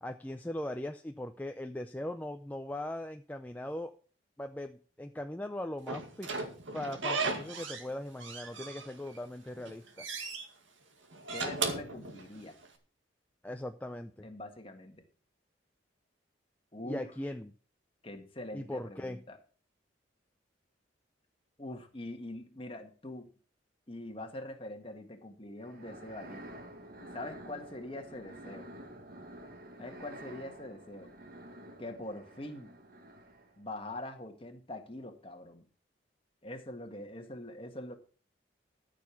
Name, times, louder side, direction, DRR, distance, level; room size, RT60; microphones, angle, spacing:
voice 1, 0.0-3.9 4.4-6.3 6.7-10.1 13.4-14.3 16.8-17.5 18.5-19.2, left 1 dB, 10° left, 6 dB, 0.5 m, -39 dB
Slam / Squeak, 5.9-7.9 8.2-9.2 9.6-10.4 11.1-12.7, right 4 dB, 80° right, 2.0 m, -36 dB
voice 2, 11.3-12.5 14.2-15.0 16.7-17.1 18.0-19.4 21.6-23.3 23.9-26.4 27.0-28.7 29.8-31.1 31.8-32.7 33.6-35.6 36.4-37.9, left 1 dB, 30° left, 5 dB, 1.7 m, -43 dB
sound 1, 25.6-33.6, right 1 dB, 50° right, 1.8 m, -49 dB
13.5 x 6.7 x 5.9 m, 0.41 s
head